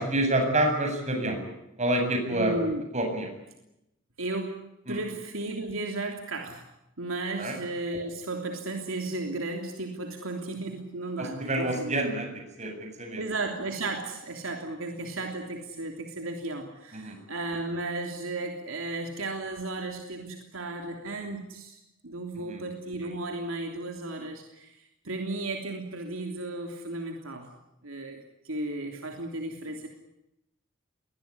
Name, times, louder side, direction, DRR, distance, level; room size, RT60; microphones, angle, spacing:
voice 1, 0.0-1.4 1.8-2.5 2.9-3.3 4.9-5.0 7.4-7.5 11.2-13.2 16.9-17.2 22.5-22.6, right 1 dB, 35° right, 4 dB, 7.9 m, -28 dB
voice 2, 2.3-2.9 4.2-6.6 7.0-12.0 13.2-24.8 25.0-27.5 27.8-29.9, right 2 dB, 70° right, 3 dB, 3.2 m, -34 dB
22.5 x 20.0 x 9.8 m, 0.87 s
head